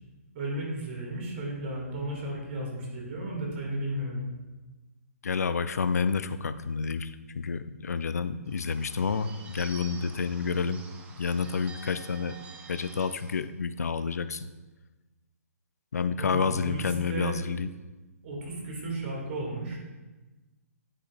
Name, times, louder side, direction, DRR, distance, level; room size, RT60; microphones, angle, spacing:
voice 1, 0.3-4.3 16.2-16.8 17.1-17.3 18.2-19.8, right 1 dB, 50° right, -2 dB, 2.2 m, -34 dB
voice 2, 5.2-10.8 11.1-12.4 12.7-14.5 15.9-17.7, left 5 dB, 85° left, 14 dB, 0.3 m, -29 dB
Bird / Bell, 8.5-13.4, right 4 dB, 15° right, 0.6 m, -49 dB
9.7 x 5.1 x 2.5 m, 1.2 s
hypercardioid pair, 140°, 8 cm